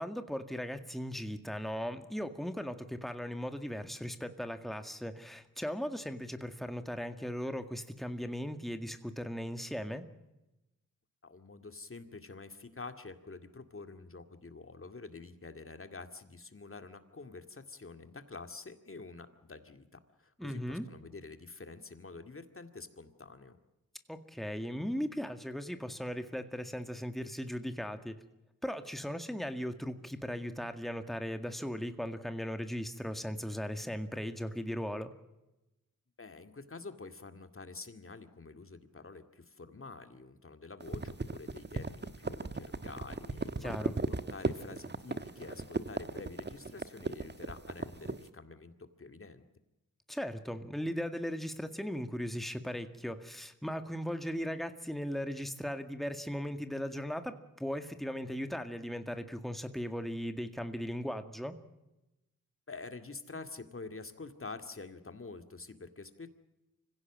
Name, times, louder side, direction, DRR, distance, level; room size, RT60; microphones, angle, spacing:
voice 1, 0.0-10.1 20.4-20.9 24.1-28.2 28.6-35.1 43.6-43.9 50.1-61.6, equal, ahead, 8 dB, 1.9 m, -38 dB
voice 2, 11.2-23.6 36.2-49.4 62.7-66.3, left 3 dB, 40° left, 8 dB, 2.3 m, -47 dB
sound 1, 40.8-48.2, right 3 dB, 35° right, 1.3 m, -36 dB
25.5 x 16.5 x 7.5 m, 0.98 s
cardioid pair, 65°, 32 cm